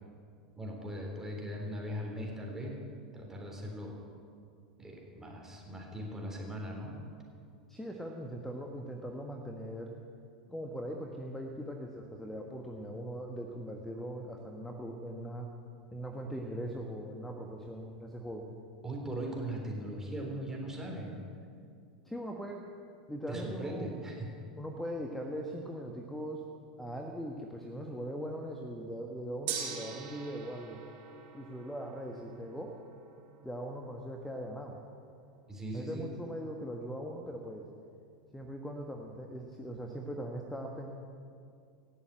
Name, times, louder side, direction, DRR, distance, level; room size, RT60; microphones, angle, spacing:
voice 1, 0.6-2.8 3.1-4.0 4.8-6.9 18.8-21.2 23.3-24.3 35.5-36.1, right 1 dB, 10° right, -1 dB, 3.8 m, -39 dB
voice 2, 7.7-9.9 10.5-15.5 15.9-18.5 22.0-22.6 23.1-23.9 24.6-26.5 26.8-30.8 31.3-32.8 33.4-34.8 35.7-37.7 38.3-40.9, equal, 5° left, 2 dB, 1.4 m, -40 dB
Gong, 29.5-39.7, right 7 dB, 50° right, 2.4 m, -47 dB
17.5 x 7.2 x 7.9 m, 2.3 s
hypercardioid pair, 90°, 4 cm